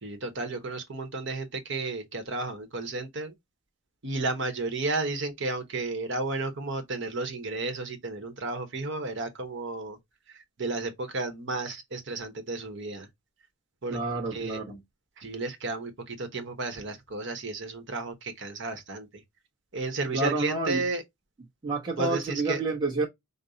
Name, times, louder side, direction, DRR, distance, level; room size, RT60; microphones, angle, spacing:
voice 1, 0.0-3.3 4.0-10.0 10.3-13.1 13.8-14.0 14.3-14.6 15.2-19.2 19.7-21.0 22.0-22.6, right 3 dB, 65° right, 1.0 m, -33 dB
voice 2, 13.9-14.8 20.1-20.8 21.6-23.1, right 3 dB, 20° right, 1.2 m, -29 dB
5.2 x 2.1 x 3.9 m
head